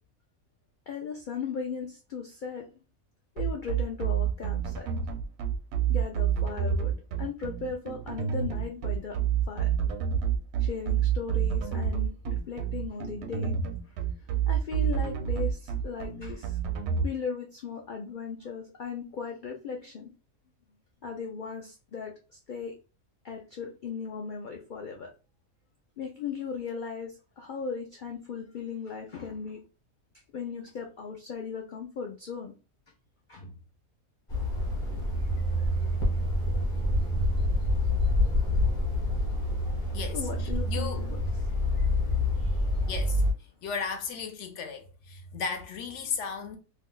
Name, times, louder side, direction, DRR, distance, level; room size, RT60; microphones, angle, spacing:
voice 1, 0.9-2.7 3.4-4.9 5.9-6.9 7.2-9.2 9.5-9.7 10.6-13.5 13.8-13.9 14.5-16.6 17.0-20.1 21.0-22.7 23.2-25.1 26.0-29.6 30.3-32.5 33.3-33.5 39.8-41.2 42.3-42.6, left 5 dB, 85° left, 0.4 m, -37 dB
sound 1, 3.4-17.1, right 8 dB, 65° right, 0.7 m, -28 dB
sound 2, 34.3-43.3, left 1 dB, 30° left, 0.7 m, -27 dB
voice 2, 39.9-41.1 42.9-43.2 43.6-46.6, left 5 dB, 65° left, 0.9 m, -35 dB
2.7 x 2.1 x 3.7 m
omnidirectional pair, 1.5 m